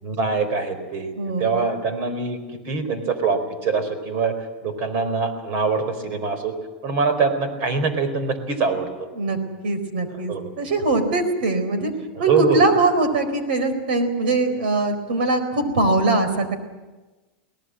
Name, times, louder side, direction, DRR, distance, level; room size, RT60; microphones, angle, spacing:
voice 1, 0.0-1.1 1.4-2.4 2.6-4.3 4.6-6.5 6.8-8.9 9.4-9.5 10.3-10.4 12.1-12.7, right 4 dB, 50° right, 10 dB, 4.4 m, -23 dB
voice 2, 1.2-1.5 9.1-9.4 9.6-11.9 12.2-16.5, right 2 dB, 85° right, 10 dB, 4.2 m, -21 dB
23.0 x 18.5 x 7.7 m, 1.2 s
supercardioid pair, 145°, 5 cm